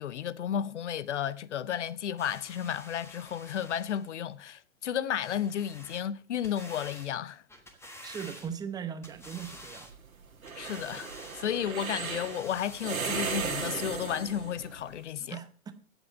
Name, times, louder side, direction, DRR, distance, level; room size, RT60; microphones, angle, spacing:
voice 1, 0.0-7.4 10.5-15.4, left 9 dB, 60° left, 0.7 m, -33 dB
sound 1, 2.2-4.2 5.2-6.1 6.4-7.1 7.5-8.7 9.0-9.9 10.5-11.5 12.1-13.0 13.6-13.7, left 1 dB, 5° left, 1.4 m, -49 dB
voice 2, 8.0-9.9 15.2-15.7, right 8 dB, 10° right, 0.8 m, -39 dB
sound 2, 9.1-14.9, right 5 dB, 75° right, 1.7 m, -36 dB
16.5 x 8.1 x 4.7 m
figure-of-eight pair, 110°, 42 cm